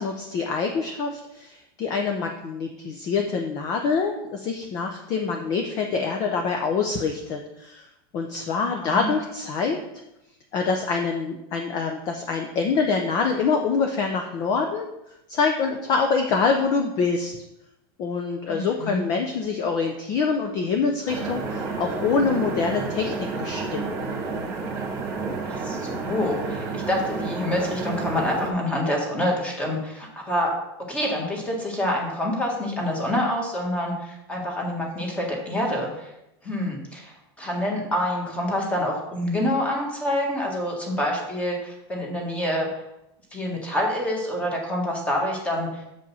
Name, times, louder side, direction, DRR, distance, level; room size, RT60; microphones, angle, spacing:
voice 1, 0.0-7.9 8.1-9.8 10.5-14.9 15.3-17.3 18.0-23.9, left 5 dB, 30° left, 4 dB, 0.6 m, -25 dB
voice 2, 8.6-9.1 18.5-19.0 25.4-30.5 30.9-36.1 36.4-42.7 43.3-45.8, left 1 dB, 10° left, 0 dB, 1.5 m, -27 dB
sound 1, 21.1-28.5, right 4 dB, 20° right, 1.5 m, -30 dB
7.0 x 5.2 x 5.4 m, 0.88 s
supercardioid pair, 175°, 14 cm